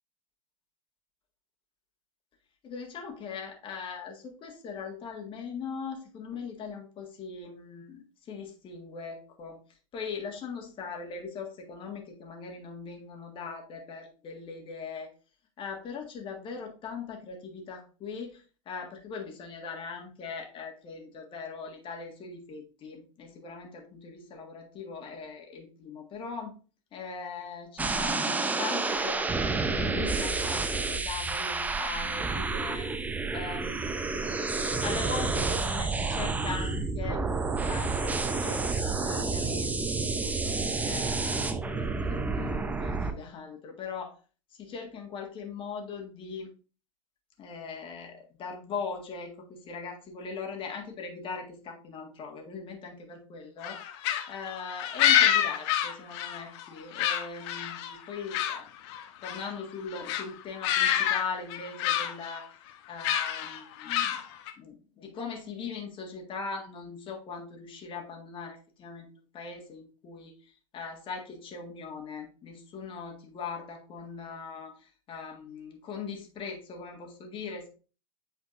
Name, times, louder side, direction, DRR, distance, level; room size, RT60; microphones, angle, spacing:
voice 1, 2.6-9.6 9.9-15.1 15.6-26.5 26.9-34.4 34.8-37.3 37.6-44.1 44.5-46.5 47.4-54.0 54.3-58.7 59.2-62.5 62.9-64.2 64.6-69.1 69.3-77.7, left 5 dB, 30° left, 0 dB, 1.7 m, -40 dB
sound 1, 27.8-43.1, right 3 dB, 10° right, 0.6 m, -30 dB
sound 2, 53.6-56.7 56.9-58.6 58.9-59.5 59.9-60.2 60.6-61.2 61.5-62.4 63.0-64.5, left 10 dB, 50° left, 0.9 m, -27 dB
8.3 x 4.4 x 2.6 m, 0.35 s
hypercardioid pair, 100°, 18 cm